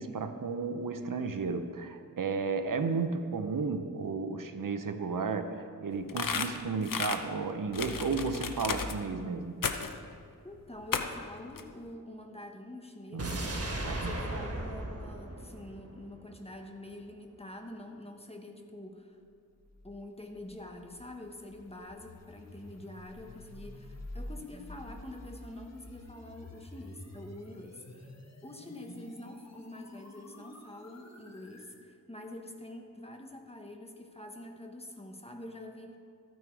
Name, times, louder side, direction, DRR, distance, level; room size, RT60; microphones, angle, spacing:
voice 1, 0.0-9.6 13.1-13.4 13.8-14.1, right 4 dB, 75° right, 8 dB, 0.7 m, -33 dB
sound 1, 6.1-7.2 7.7-9.0 9.6-10.0 10.9-11.2 11.6-11.7, left 5 dB, 75° left, 0.7 m, -33 dB
voice 2, 10.4-19.2 19.8-28.1 28.4-36.0, left 1 dB, 20° left, 3 dB, 1.2 m, -46 dB
sound 2, 13.2-16.3 16.6-16.7, right 1 dB, 45° right, 1.5 m, -36 dB
sound 3, 19.7-31.8, left 1 dB, 50° left, 1.4 m, -49 dB
14.0 x 9.4 x 4.7 m, 2.3 s
wide cardioid pair, 75°, 33 cm